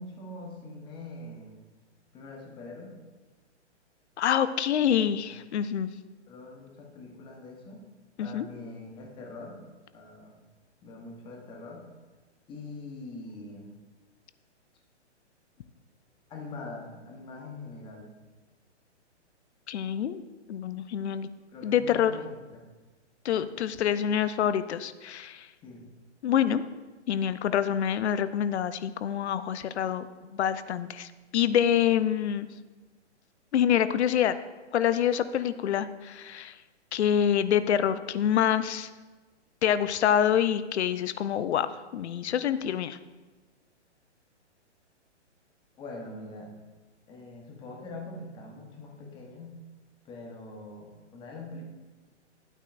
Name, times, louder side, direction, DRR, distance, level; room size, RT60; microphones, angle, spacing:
voice 1, 0.0-1.6 2.1-3.0 4.8-5.0 5.3-5.4 6.3-7.8 8.2-10.3 10.8-11.9 12.5-13.7 15.6-15.7 16.3-18.1 21.5-22.6 25.6-25.9 45.8-46.5 47.1-49.6 50.0-51.6, left 2 dB, 15° left, 0 dB, 1.0 m, -43 dB
voice 2, 4.2-5.9 8.2-8.5 19.7-20.2 20.5-21.3 21.6-22.1 23.2-25.5 26.2-26.6 27.1-30.1 30.3-32.5 33.5-34.4 34.7-36.5 36.9-38.9 39.6-43.0, left 9 dB, 65° left, 13 dB, 0.6 m, -26 dB
11.0 x 8.9 x 2.5 m, 1.2 s
hypercardioid pair, 145°, 36 cm